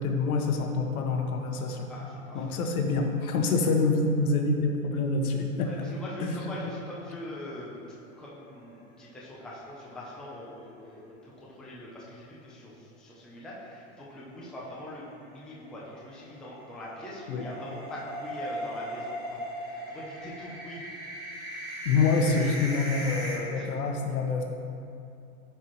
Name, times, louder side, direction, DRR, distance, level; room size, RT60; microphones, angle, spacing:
voice 1, 0.0-1.9 2.3-5.8 6.2-6.3 17.3-17.4 21.8-24.4, left 3 dB, 90° left, 3 dB, 1.2 m, -26 dB
voice 2, 1.9-2.6 5.6-20.9 23.5-23.8, left 1 dB, ahead, -6 dB, 0.4 m, -43 dB
sound 1, 8.4-9.3 9.7-9.8 10.1-10.2 14.3-23.4, equal, 20° right, 1.6 m, -39 dB
12.5 x 4.6 x 3.0 m, 2.6 s
supercardioid pair, 150°, 42 cm